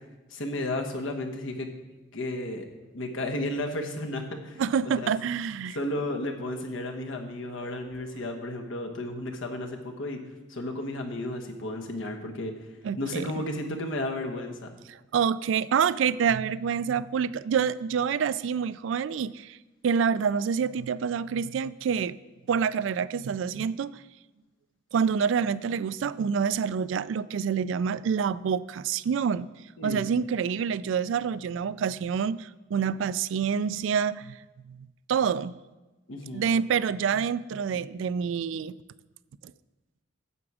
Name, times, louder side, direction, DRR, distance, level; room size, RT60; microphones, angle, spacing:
voice 1, 0.3-1.7 2.1-2.7 2.9-5.1 5.7-10.2 10.5-12.7 13.0-14.7 29.8-30.1 36.1-36.5, left 1 dB, 80° left, 3 dB, 1.2 m, -33 dB
voice 2, 4.6-5.8 12.8-13.3 14.9-19.6 19.8-22.2 22.5-24.0 24.9-29.5 29.8-34.4 34.7-35.5 36.3-38.7, right 7 dB, 70° right, 18 dB, 0.3 m, -27 dB
9.7 x 7.1 x 4.8 m, 1.1 s
head